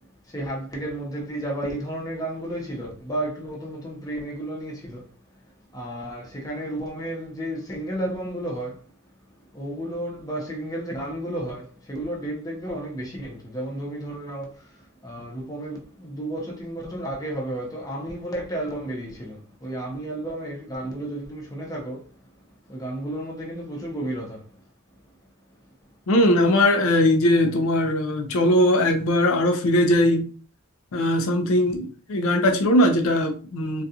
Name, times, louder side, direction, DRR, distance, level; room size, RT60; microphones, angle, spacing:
voice 1, 0.3-5.1 5.7-8.9 9.5-22.1 22.7-24.5, right 1 dB, 15° left, 0.7 m, -32 dB
voice 2, 26.1-30.3 30.9-33.8, left 1 dB, 80° left, 0.4 m, -20 dB
2.4 x 2.3 x 2.7 m
head